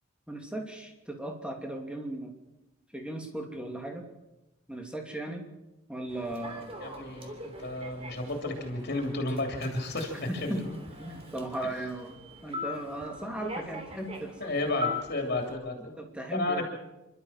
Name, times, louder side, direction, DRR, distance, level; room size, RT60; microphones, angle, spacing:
voice 1, 0.3-2.3 2.9-4.1 4.7-5.5 5.9-6.8 10.3-10.6 11.0-14.5 16.0-16.6, right 1 dB, 5° right, 2 dB, 2.7 m, -37 dB
Human voice / Subway metro underground, 6.1-15.5, left 2 dB, 30° right, 3.1 m, -41 dB
voice 2, 6.8-10.7 14.4-16.0 16.3-16.6, left 2 dB, 50° left, 2 dB, 3.1 m, -32 dB
28.5 x 12.5 x 7.4 m, 0.98 s
head